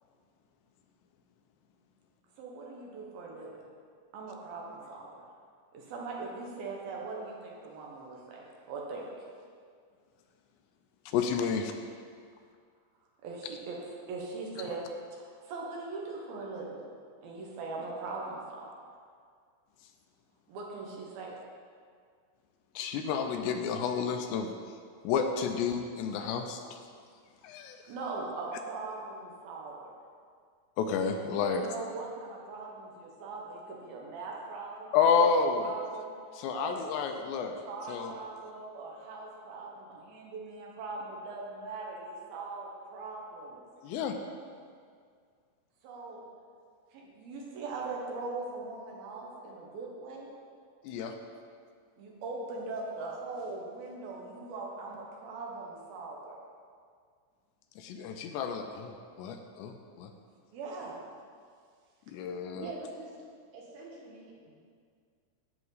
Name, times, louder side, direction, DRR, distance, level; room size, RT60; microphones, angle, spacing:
voice 1, 2.4-3.6 4.1-5.1 5.7-9.1 13.2-13.8 14.1-14.8 15.2-16.8 17.2-18.7 20.5-21.3 27.9-29.9 31.3-35.2 35.6-36.1 36.5-36.9 37.3-43.6 45.8-46.3 46.9-50.3 52.0-56.4 60.5-61.0, right 3 dB, 70° right, -2 dB, 2.7 m, -40 dB
voice 2, 11.1-11.7 22.8-24.5 25.0-26.8 27.4-27.8 30.8-31.6 34.9-35.7 36.3-37.5 37.9-38.1 43.8-44.2 50.8-51.1 57.8-60.1 62.1-62.7, left 6 dB, 80° left, 5 dB, 2.7 m, -30 dB
voice 3, 62.5-63.2 63.5-64.6, right 3 dB, 85° right, -3 dB, 4.0 m, -44 dB
11.0 x 8.3 x 4.0 m, 2.1 s
omnidirectional pair, 5.2 m